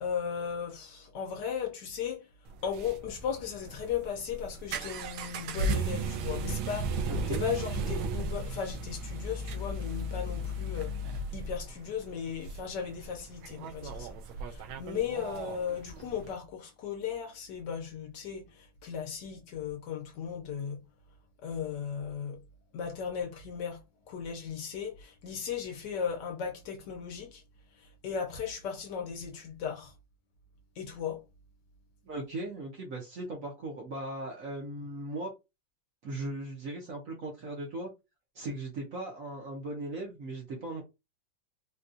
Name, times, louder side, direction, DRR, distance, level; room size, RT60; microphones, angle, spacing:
voice 1, 0.0-2.2 2.6-10.9 11.3-14.1 14.5-18.5 18.8-20.8 21.4-22.4 22.7-23.8 24.1-27.4 28.0-29.9 30.8-31.2, left 7 dB, 70° left, 1.1 m, -36 dB
sound 1, 2.5-16.3, right 2 dB, 80° right, 1.3 m, -35 dB
voice 2, 7.1-7.5 32.0-35.3 36.0-37.9 38.3-40.8, right 2 dB, 60° right, 0.9 m, -38 dB
4.1 x 2.2 x 2.5 m
omnidirectional pair, 2.2 m